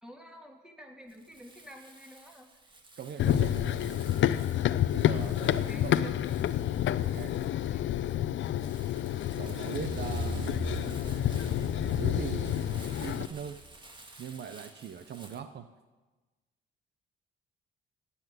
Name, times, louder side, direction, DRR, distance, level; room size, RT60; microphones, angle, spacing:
voice 1, 0.0-2.7 5.5-6.5 7.6-7.8, left 1 dB, 5° right, 1 dB, 3.0 m, -49 dB
Crumpling crinkling, 1.1-15.4, right 2 dB, 25° right, 2.0 m, -53 dB
voice 2, 3.0-4.0 4.9-6.1 7.0-7.4 9.4-10.5 12.0-12.6 13.0-13.6 14.2-15.7, right 7 dB, 60° right, 10 dB, 0.9 m, -41 dB
Run, 3.2-13.3, left 11 dB, 70° left, 0.6 m, -29 dB
sound 1, 9.3-13.7 14.2-14.3, right 4 dB, 85° right, 2.1 m, -40 dB
18.0 x 8.4 x 9.2 m, 1.2 s
cardioid pair, 90°, 20 cm